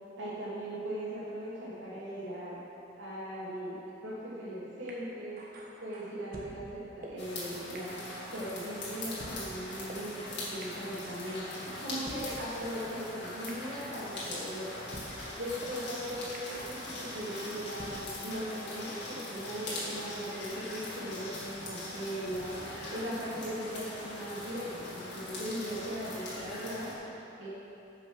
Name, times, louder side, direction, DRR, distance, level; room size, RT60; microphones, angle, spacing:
voice 1, 0.2-2.6 3.0-5.4 5.8-7.9 8.3-11.4 11.8-14.7 15.4-22.5 22.9-26.9 27.4-27.5, equal, 75° right, -11 dB, 2.5 m, -39 dB
sound 1, 4.9-5.0 5.4-6.5 7.0-7.1 7.8-7.9 8.2-9.4 9.9-10.0 10.6-10.7 11.1-12.2 12.8-12.9 13.5-13.6 14.0-15.1 15.6-15.7 16.3-16.4 16.8-17.9, right 1 dB, 45° right, 1.3 m, -48 dB
sound 2, 7.2-26.9, left 1 dB, 60° left, 2.3 m, -41 dB
9.7 x 6.0 x 6.3 m, 2.9 s
head